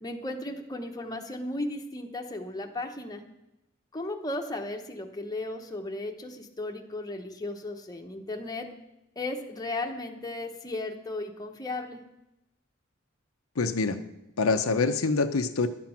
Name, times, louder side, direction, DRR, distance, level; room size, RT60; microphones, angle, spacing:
voice 1, 0.0-3.2 3.9-8.7 9.2-12.0, left 2 dB, 20° left, 3 dB, 1.0 m, -35 dB
voice 2, 13.6-14.0 14.4-15.7, left 4 dB, 90° left, 8 dB, 0.7 m, -25 dB
11.5 x 7.6 x 5.8 m, 0.90 s
head